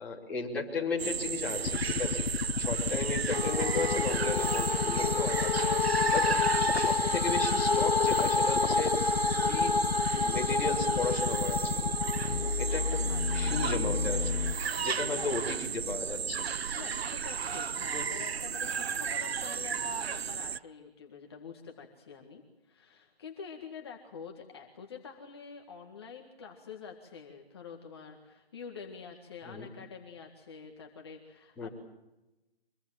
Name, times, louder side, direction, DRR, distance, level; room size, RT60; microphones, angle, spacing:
voice 1, 0.0-2.2 2.6-6.3 6.7-9.8 10.1-12.0 12.6-13.0 13.3-14.4 14.8-16.5 17.9-18.1 29.4-29.7 31.6-31.7, left 4 dB, 5° left, -6 dB, 3.0 m, -35 dB
sound 1, 1.0-20.6, right 7 dB, 85° right, 0.8 m, -34 dB
sound 2, 1.7-14.6, left 5 dB, 90° left, 1.3 m, -32 dB
sound 3, 3.3-13.5, left 4 dB, 45° left, 2.1 m, -30 dB
voice 2, 13.1-13.7 15.2-15.4 16.8-31.7, left 6 dB, 25° left, 2 dB, 1.8 m, -47 dB
25.0 x 23.0 x 7.5 m, 1.0 s
hypercardioid pair, 175°, 30 cm